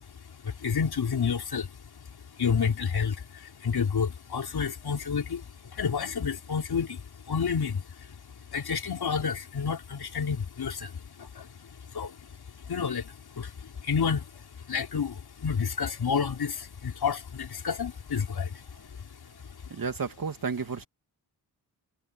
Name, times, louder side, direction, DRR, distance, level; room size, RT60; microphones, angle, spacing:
voice 1, 0.0-8.2 8.5-19.8, left 6 dB, 60° left, 4.2 m, -31 dB
voice 2, 19.7-20.8, right 5 dB, 50° right, 2.9 m, -32 dB
cardioid pair, 55°, 42 cm